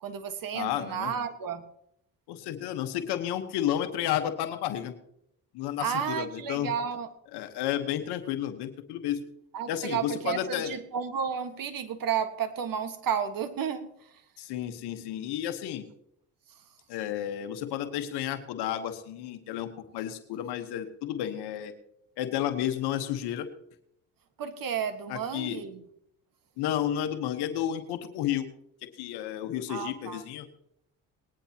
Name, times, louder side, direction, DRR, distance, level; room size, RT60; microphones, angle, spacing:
voice 1, 0.0-1.6 5.8-7.1 9.5-13.9 24.4-25.8 29.7-30.2, right 7 dB, 60° right, 9 dB, 1.6 m, -32 dB
voice 2, 0.5-1.1 2.3-4.9 5.5-6.7 7.3-9.2 9.7-10.7 14.4-15.8 16.9-21.7 22.2-23.5 25.1-25.6 26.6-28.5 29.0-30.5, left 11 dB, 85° left, 7 dB, 1.3 m, -32 dB
19.5 x 10.5 x 2.9 m, 0.71 s
supercardioid pair, 75°, 39 cm